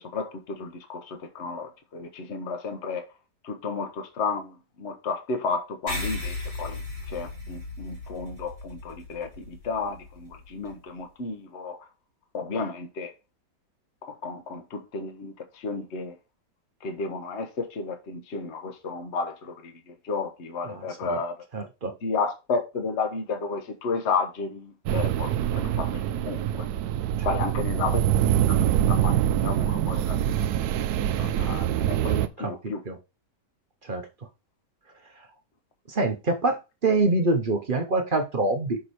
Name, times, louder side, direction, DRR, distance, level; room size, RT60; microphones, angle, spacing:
voice 1, 0.1-3.1 3.4-6.8 7.1-11.8 12.3-13.1 14.0-16.2 16.8-21.4 22.0-26.7 27.2-28.0 28.5-30.5 31.1-32.8, left 4 dB, 45° left, 1.2 m, -32 dB
sound 1, 5.9-10.7, left 3 dB, 80° left, 4.4 m, -36 dB
voice 2, 20.7-21.2 21.5-21.9 27.2-27.3 32.1-32.5 32.8-33.0 33.8-34.0 35.9-38.8, right 2 dB, 40° right, 0.8 m, -26 dB
sound 2, 24.9-32.3, right 11 dB, 70° right, 1.1 m, -25 dB
6.3 x 4.8 x 4.2 m
omnidirectional pair, 1.8 m